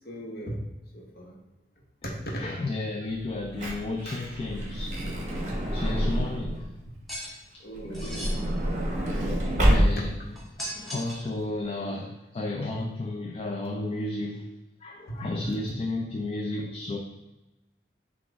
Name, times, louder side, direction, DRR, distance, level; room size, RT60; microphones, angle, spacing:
voice 1, 0.0-0.6 0.9-1.3 2.0-2.7 7.6-8.4 12.7-12.8 15.2-15.5, right 1 dB, 60° left, -2 dB, 1.0 m, -37 dB
voice 2, 2.4-5.0 5.7-6.7 7.9-8.7 9.6-14.5 14.8-17.0, left 2 dB, 35° left, 1 dB, 0.3 m, -33 dB
Truck / Door, 3.2-6.7 7.7-10.3 11.0-11.1 11.2-11.4, equal, 40° right, 0.9 m, -27 dB
sound 1, 7.1-7.3 7.9-8.3 10.4-11.3, equal, ahead, 0.8 m, -37 dB
5.9 x 2.4 x 3.4 m, 0.97 s
head